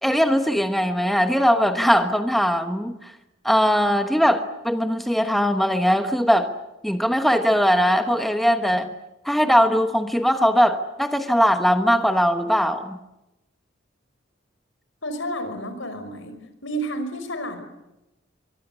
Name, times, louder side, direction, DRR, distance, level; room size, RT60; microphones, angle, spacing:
voice 1, 0.0-3.1 3.4-6.5 6.8-8.9 9.2-13.0, equal, ahead, 7 dB, 1.1 m, -20 dB
voice 2, 15.0-17.6, right 1 dB, 70° left, 9 dB, 5.6 m, -31 dB
24.5 x 23.5 x 8.2 m, 0.94 s
head